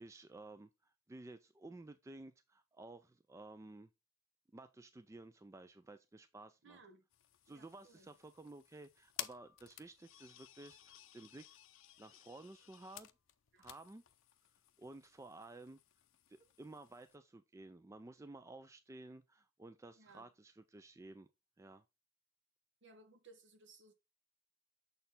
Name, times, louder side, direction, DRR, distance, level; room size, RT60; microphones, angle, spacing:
voice 1, 0.0-3.9 4.5-6.8 7.4-11.6 12.0-13.1 13.6-14.0 14.8-15.8 16.3-21.3 21.6-21.9, right 2 dB, 15° right, 0.3 m, -54 dB
voice 2, 6.6-7.0 7.5-8.1 13.5-13.7 19.9-20.3 22.8-23.9, right 3 dB, 60° right, 1.2 m, -61 dB
sound 1, 7.1-17.2, left 13 dB, 70° left, 0.5 m, -54 dB
6.7 x 4.3 x 3.7 m
head